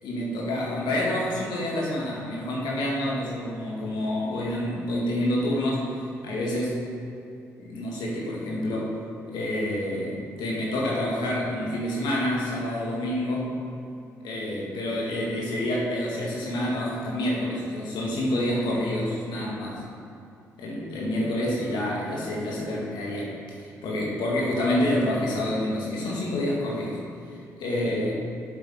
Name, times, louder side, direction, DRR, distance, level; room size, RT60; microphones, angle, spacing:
voice 1, 0.0-6.8 7.6-9.0 9.3-13.5 14.2-19.8 20.6-27.0 27.6-28.1, left 1 dB, 70° left, -4 dB, 2.1 m, -28 dB
7.8 x 7.6 x 3.8 m, 2.6 s
hypercardioid pair, 50°, 8 cm